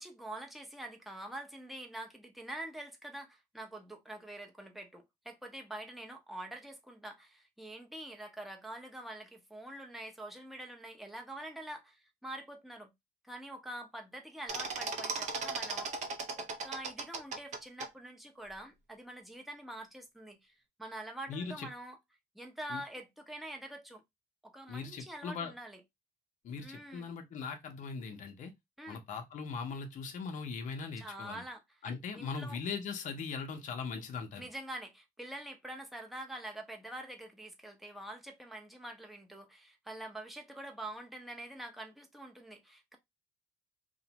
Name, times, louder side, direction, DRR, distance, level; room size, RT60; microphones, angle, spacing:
voice 1, 0.0-12.9 13.2-22.0 22.3-24.0 24.4-25.8 26.6-27.1 28.8-29.0 31.0-31.6 32.1-32.6 34.4-43.0, right 1 dB, ahead, 0.6 m, -45 dB
sound 1, 14.5-17.9, right 4 dB, 45° right, 0.5 m, -37 dB
voice 2, 21.3-21.7 22.7-22.8 24.7-25.5 26.4-28.5 28.9-31.4 31.8-34.5, left 5 dB, 50° left, 0.6 m, -40 dB
2.5 x 2.1 x 2.8 m
cardioid pair, 110°, 17 cm